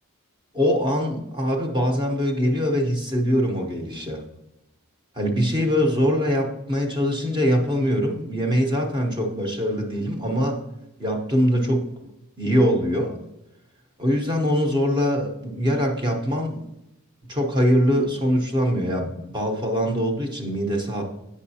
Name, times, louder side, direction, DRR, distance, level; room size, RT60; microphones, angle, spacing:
voice 1, 0.5-4.2 5.1-10.6 11.0-11.9 12.4-13.2 14.0-16.6 17.3-21.0, equal, 20° right, 2 dB, 0.8 m, -23 dB
8.4 x 6.6 x 2.7 m, 0.88 s
head